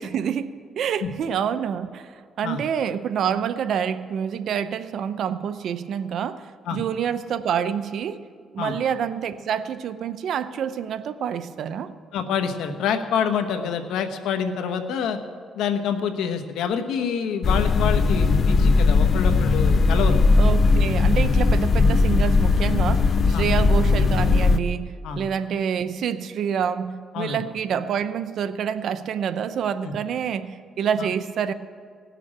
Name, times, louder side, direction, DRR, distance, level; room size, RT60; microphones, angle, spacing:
voice 1, 0.0-8.2 8.5-11.9 20.4-31.5, right 8 dB, 70° right, 12 dB, 0.6 m, -27 dB
voice 2, 12.1-15.2 15.5-20.2 23.3-23.5 25.0-25.2 27.1-27.4 29.8-29.9 31.0-31.1, left 7 dB, 85° left, 7 dB, 1.1 m, -27 dB
sound 1, 17.4-24.6, left 4 dB, 45° left, 0.5 m, -18 dB
17.5 x 6.9 x 8.8 m, 2.1 s
cardioid pair, 90°, 0 cm